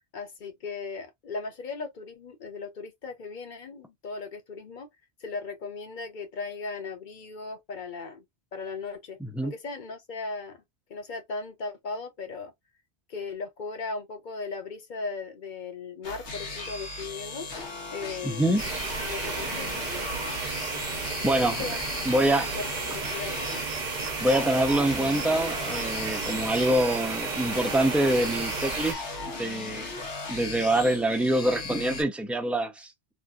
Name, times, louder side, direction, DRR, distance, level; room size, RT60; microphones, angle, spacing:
voice 1, 0.1-4.9 5.2-8.2 8.5-10.6 10.9-12.5 13.1-17.5 17.9-18.5 19.1-20.1 21.2-21.8 22.3-23.4, left 4 dB, 50° left, 0.9 m, -37 dB
voice 2, 9.2-9.5 18.2-18.6 21.2-21.6 22.1-22.5 24.2-29.0 29.4-29.9 30.3-33.1, right 1 dB, ahead, 0.3 m, -25 dB
sound 1, 16.0-32.0, left 3 dB, 85° left, 1.3 m, -37 dB
sound 2, 18.6-28.9, right 4 dB, 45° right, 0.8 m, -33 dB
3.0 x 2.5 x 2.4 m
omnidirectional pair, 1.1 m